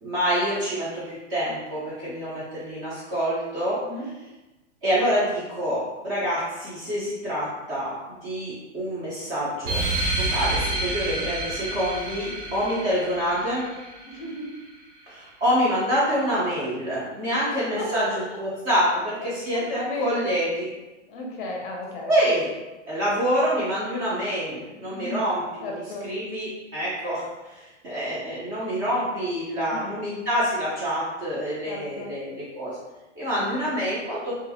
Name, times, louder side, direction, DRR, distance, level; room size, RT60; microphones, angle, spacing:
voice 1, 0.0-3.8 4.8-9.8 10.2-13.7 15.1-20.7 22.1-22.5 22.9-32.8 33.2-34.4, equal, 20° right, -8 dB, 0.4 m, -26 dB
sound 1, 9.6-14.7, right 2 dB, 75° right, 0.7 m, -29 dB
voice 2, 14.0-14.5 17.8-18.2 19.5-20.3 21.1-22.1 24.9-25.3 25.6-26.1 29.7-29.9 31.6-32.1 33.4-33.5, left 2 dB, 45° left, 0 dB, 0.5 m, -34 dB
2.3 x 2.0 x 2.6 m, 1.1 s
hypercardioid pair, 145°, 36 cm